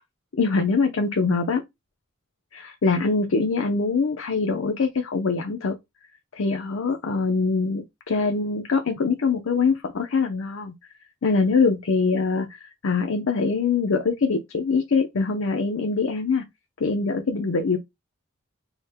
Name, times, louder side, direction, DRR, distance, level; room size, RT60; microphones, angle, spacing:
voice 1, 0.3-1.6 2.5-5.7 6.4-10.7 11.2-16.4 16.8-17.8, left 4 dB, 80° left, 0.6 m, -23 dB
4.6 x 2.1 x 3.5 m
head